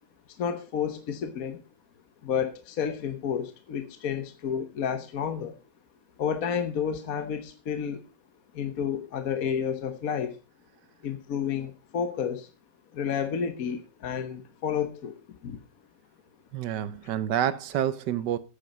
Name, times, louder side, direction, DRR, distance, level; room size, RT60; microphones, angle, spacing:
voice 1, 0.4-1.6 2.2-5.6 6.2-8.0 8.5-10.4 11.0-12.5 12.9-15.1 15.4-15.6 17.0-17.1, left 7 dB, 55° left, 1.3 m, -30 dB
voice 2, 16.5-18.4, right 10 dB, 70° right, 1.3 m, -28 dB
9.5 x 9.0 x 5.4 m
omnidirectional pair, 2.0 m